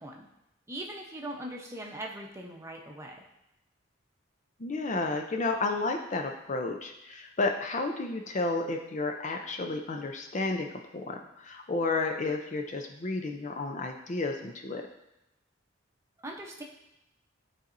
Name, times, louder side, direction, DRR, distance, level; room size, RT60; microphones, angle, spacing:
voice 1, 0.7-3.2 16.2-16.6, right 1 dB, 15° right, 0 dB, 0.8 m, -40 dB
voice 2, 4.6-14.9, left 3 dB, 40° left, 4 dB, 0.5 m, -32 dB
11.5 x 4.1 x 2.6 m, 0.89 s
head